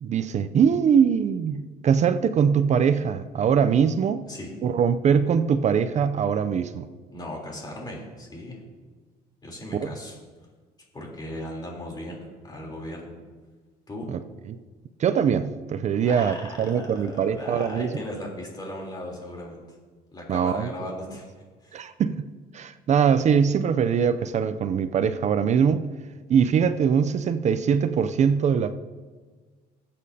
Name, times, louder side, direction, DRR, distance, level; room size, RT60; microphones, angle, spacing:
voice 1, 0.0-4.2 4.6-6.9 9.7-9.9 14.1-14.2 14.5-14.6 15.0-17.9 20.3-20.9 21.7-25.9 26.3-28.7, right 7 dB, 45° right, 11 dB, 0.5 m, -22 dB
voice 2, 7.1-8.6 9.4-10.2 10.9-13.2 13.9-14.1 16.0-19.8 20.1-21.3 21.6-21.9, left 1 dB, 25° left, -1 dB, 3.3 m, -37 dB
18.5 x 8.5 x 2.8 m, 1.4 s
cardioid pair, 110°, 17 cm